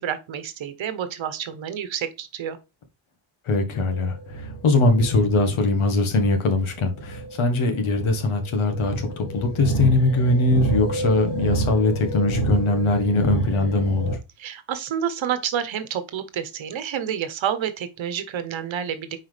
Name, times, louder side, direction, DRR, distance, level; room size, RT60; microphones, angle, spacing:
voice 1, 0.0-2.6 14.4-19.2, right 9 dB, 70° right, 1.1 m, -29 dB
voice 2, 3.4-14.2, left 2 dB, 75° left, 1.5 m, -21 dB
sound 1, 3.7-14.1, right 2 dB, 55° left, 1.7 m, -29 dB
7.1 x 4.7 x 3.3 m
cardioid pair, 95°, 49 cm